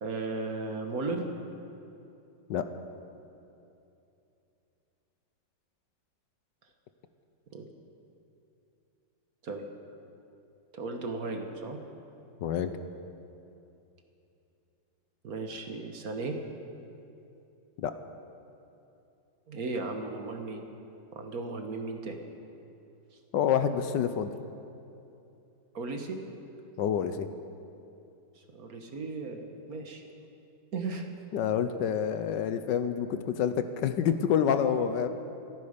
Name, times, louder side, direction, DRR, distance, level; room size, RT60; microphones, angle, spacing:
voice 1, 0.0-1.2 7.5-7.7 9.4-9.7 10.7-11.8 15.2-16.3 19.5-20.6 21.1-22.2 25.7-26.2 28.5-30.0 30.7-31.0, right 3 dB, 55° right, 4 dB, 1.6 m, -35 dB
voice 2, 12.4-12.7 17.8-17.9 23.3-24.3 26.8-27.3 31.3-35.1, left 8 dB, 75° left, 10 dB, 1.3 m, -27 dB
28.0 x 9.7 x 5.1 m, 2.8 s
omnidirectional pair, 2.0 m